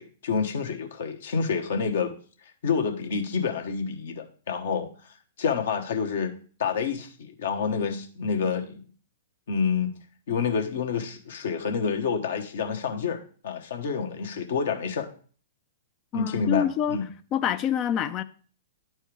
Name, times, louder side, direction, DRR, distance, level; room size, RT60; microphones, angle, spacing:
voice 1, 0.0-2.1 2.6-4.9 5.4-6.3 6.6-8.8 9.5-9.9 10.3-15.1 16.1-17.1, left 6 dB, 65° left, 1.1 m, -28 dB
voice 2, 16.1-17.0 17.3-18.2, left 8 dB, 30° left, 0.4 m, -26 dB
10.5 x 4.5 x 3.3 m
figure-of-eight pair, 110°, 0 cm